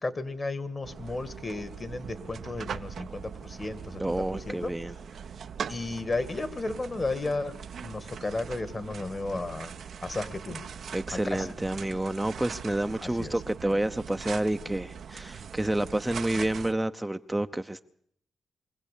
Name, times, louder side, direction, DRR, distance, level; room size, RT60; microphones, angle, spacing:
voice 1, 0.0-4.7 5.7-9.7 10.0-10.6 11.1-11.5 13.0-13.3, left 2 dB, 35° left, 2.0 m, -34 dB
sound 1, 0.8-16.7, right 7 dB, 70° right, 0.8 m, -41 dB
voice 2, 4.0-4.9 10.9-17.8, right 1 dB, 10° right, 0.8 m, -29 dB
24.0 x 16.0 x 8.4 m
cardioid pair, 60°, 0 cm